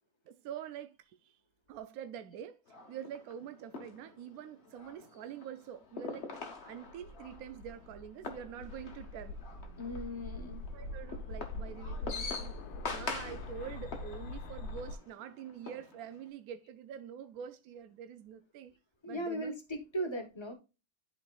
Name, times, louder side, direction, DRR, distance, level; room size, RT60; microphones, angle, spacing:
voice 1, 0.3-1.4 1.7-2.6 2.9-6.3 6.6-9.4 10.7-12.5 12.8-18.7 19.1-19.5, right 9 dB, 75° right, 0.8 m, -46 dB
sound 1, 2.7-16.3, left 4 dB, 40° left, 1.1 m, -45 dB
sound 2, 6.6-14.9, left 2 dB, 85° left, 1.7 m, -43 dB
voice 2, 9.8-10.6 19.0-20.5, right 1 dB, 25° left, 0.6 m, -38 dB
11.0 x 4.5 x 2.3 m
omnidirectional pair, 2.1 m